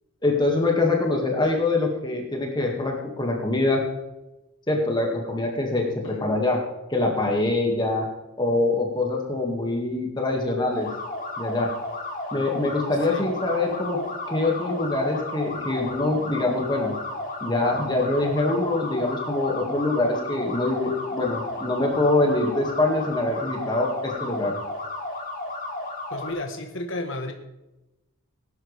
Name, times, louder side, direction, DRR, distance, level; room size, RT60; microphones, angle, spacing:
voice 1, 0.2-3.8 4.7-6.6 6.9-8.0 8.4-10.9 11.4-11.7 12.3-14.0 14.3-16.9 17.4-24.6, left 2 dB, 20° left, 0 dB, 2.1 m, -24 dB
sound 1, 10.7-26.3, left 2 dB, 40° left, 2.7 m, -33 dB
voice 2, 26.1-27.3, left 2 dB, 55° left, 3 dB, 1.4 m, -32 dB
18.5 x 10.5 x 3.5 m, 0.96 s
head